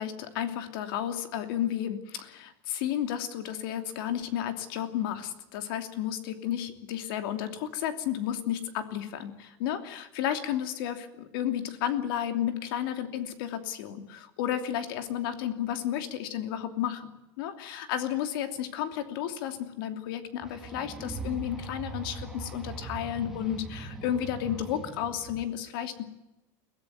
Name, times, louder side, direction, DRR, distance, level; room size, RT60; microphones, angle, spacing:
voice 1, 0.0-17.1 17.4-26.0, left 10 dB, 70° left, 8 dB, 2.9 m, -32 dB
sound 1, 20.4-25.4, right 3 dB, 5° right, 1.9 m, -40 dB
23.0 x 16.5 x 9.3 m, 0.99 s
cardioid pair, 180°, 12 cm